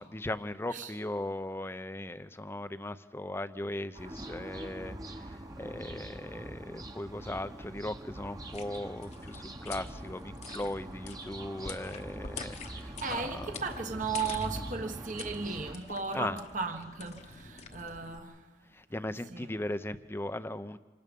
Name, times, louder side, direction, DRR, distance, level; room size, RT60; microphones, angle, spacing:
voice 1, 0.0-13.5 16.1-16.4 18.7-20.8, left 1 dB, 15° left, 0.7 m, -38 dB
sound 1, 3.9-15.8, right 1 dB, 20° right, 1.1 m, -43 dB
sound 2, 8.4-18.2, left 4 dB, 40° left, 1.1 m, -47 dB
voice 2, 12.8-18.5 19.3-19.5, right 4 dB, 45° right, 1.3 m, -36 dB
27.5 x 19.0 x 5.4 m
head